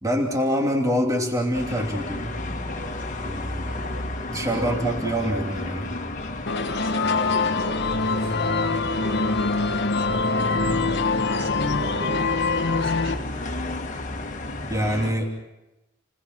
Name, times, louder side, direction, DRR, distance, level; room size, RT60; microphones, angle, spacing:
voice 1, 0.0-2.4 3.2-3.8 4.3-5.9 14.7-15.3, equal, 15° right, 0 dB, 3.0 m, -25 dB
sound 1, 1.5-15.1, left 2 dB, 40° left, 2.0 m, -32 dB
voice 2, 2.7-3.1 3.7-4.9 6.5-13.3, right 1 dB, 70° right, 3 dB, 4.9 m, -40 dB
sound 2, 6.5-13.1, left 3 dB, 55° left, 1.5 m, -24 dB
29.5 x 20.0 x 6.2 m, 1.0 s
head